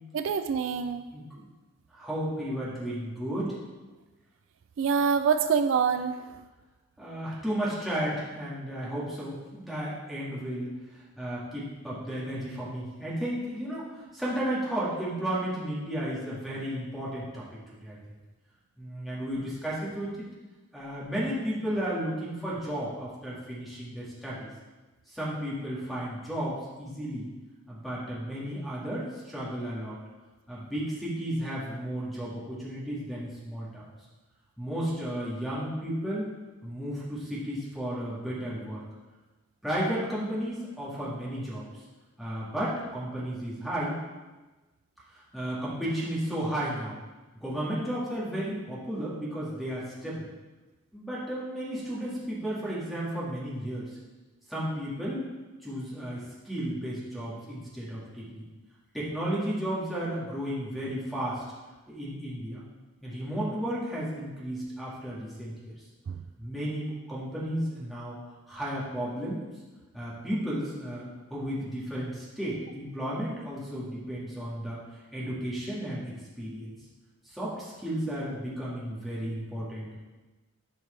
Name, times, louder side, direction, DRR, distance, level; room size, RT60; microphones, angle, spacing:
voice 1, 0.1-1.0 4.8-6.4 66.1-66.2, right 6 dB, 65° right, 9 dB, 0.3 m, -26 dB
voice 2, 1.1-1.4 1.9-3.6 7.0-17.4 17.8-18.0 18.8-20.3 20.7-24.5 25.1-27.3 27.7-30.0 30.5-33.9 34.6-36.3 36.6-38.8 39.6-41.7 42.2-44.0 45.1-47.0 47.4-50.3 50.9-53.9 54.5-55.2 55.6-58.5 58.9-61.4 61.9-62.6 63.0-65.8 66.4-68.2 68.5-69.4 69.9-74.8 75.1-76.1 76.4-76.7 77.3-80.0, equal, ahead, -7 dB, 1.9 m, -33 dB
11.0 x 4.7 x 3.3 m, 1.2 s
head